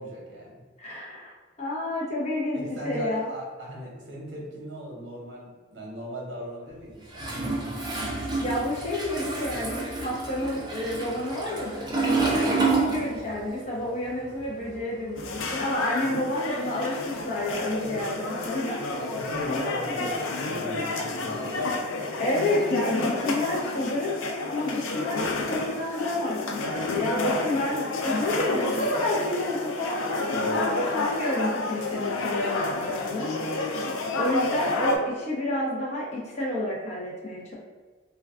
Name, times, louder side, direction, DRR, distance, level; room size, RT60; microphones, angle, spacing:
voice 1, 0.0-0.6 2.5-7.4 16.0-16.1 17.8-18.1 19.0-21.8 30.1-30.6, equal, 60° right, -3 dB, 0.8 m, -39 dB
voice 2, 0.8-3.3 8.4-18.8 19.5-20.1 22.2-30.7 30.9-37.5, left 1 dB, 35° left, -4 dB, 0.6 m, -30 dB
Toilet flush, 7.1-13.6 13.8-15.4, right 3 dB, 20° right, 0.4 m, -29 dB
sound 1, 15.2-35.0, left 2 dB, 85° left, 0.4 m, -30 dB
2.2 x 2.2 x 3.4 m, 1.3 s
head